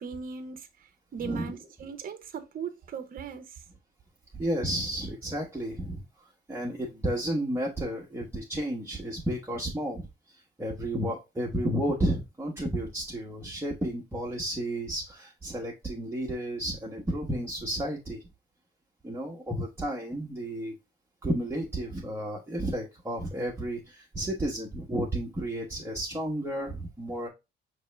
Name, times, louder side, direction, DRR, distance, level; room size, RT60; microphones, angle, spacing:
voice 1, 0.0-3.6, right 6 dB, 45° right, 0.7 m, -38 dB
voice 2, 1.2-1.5 4.4-18.2 19.0-20.7 21.2-27.3, right 1 dB, 10° right, 1.0 m, -32 dB
5.3 x 3.0 x 3.2 m
cardioid pair, 90°, 20 cm